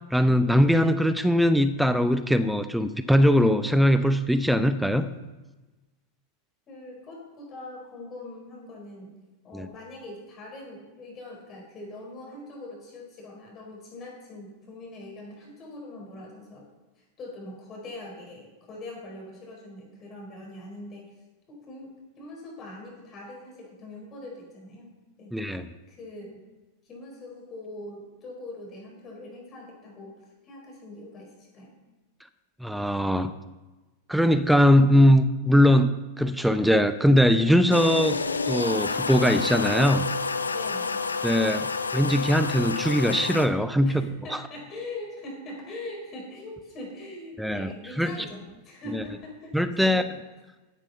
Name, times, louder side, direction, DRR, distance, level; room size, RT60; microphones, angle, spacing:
voice 1, 0.1-5.1 9.5-9.7 25.3-25.7 32.6-33.3 34.1-35.9 36.2-38.2 38.5-40.1 41.2-44.0 44.3-44.4 47.4-48.1 48.9-49.0 49.5-50.0, equal, ahead, 11 dB, 0.7 m, -21 dB
voice 2, 6.7-9.2 9.4-16.7 17.0-21.1 21.5-24.9 25.2-25.4 25.9-26.4 26.8-30.1 30.4-31.7 40.5-41.0 43.8-50.2, left 2 dB, 30° left, -1 dB, 4.8 m, -42 dB
sound 1, 37.7-43.5, left 4 dB, 75° left, 0.7 m, -29 dB
14.0 x 9.0 x 5.5 m, 1.1 s
figure-of-eight pair, 90°, 0 cm